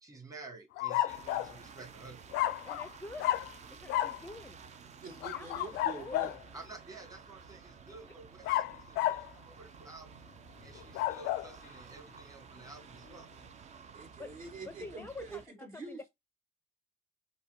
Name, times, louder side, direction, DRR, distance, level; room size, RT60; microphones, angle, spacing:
voice 1, 0.0-2.2 6.5-10.2 10.6-13.3, right 3 dB, 20° right, 1.5 m, -51 dB
sound 1, 0.8-1.6 2.3-2.9 3.2-3.5 3.9-4.2 5.2-6.4 8.4-9.3 10.8-11.5, left 14 dB, 85° left, 0.4 m, -32 dB
sound 2, 1.1-15.5, right 6 dB, 40° right, 0.6 m, -53 dB
voice 2, 2.6-3.4 3.7-4.6 5.1-5.5 5.9-6.3 14.2-14.3 14.7-15.4 15.7-16.1, left 3 dB, 10° left, 0.5 m, -46 dB
voice 3, 5.0-6.4 13.9-16.1, right 4 dB, 55° right, 2.0 m, -46 dB
5.3 x 2.2 x 4.4 m
cardioid pair, 110°, 17 cm